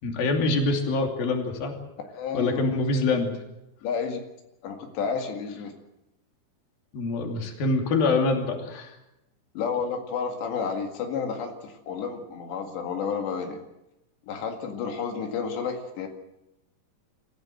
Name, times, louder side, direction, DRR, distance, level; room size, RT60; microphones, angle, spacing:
voice 1, 0.0-1.7 2.3-3.3 6.9-8.9, left 3 dB, 60° left, 3 dB, 4.5 m, -25 dB
voice 2, 2.1-2.6 3.8-4.2 4.6-5.7 9.6-13.6 14.3-16.1, left 6 dB, 85° left, 3 dB, 4.3 m, -31 dB
27.5 x 15.5 x 7.9 m, 0.92 s
omnidirectional pair, 4.9 m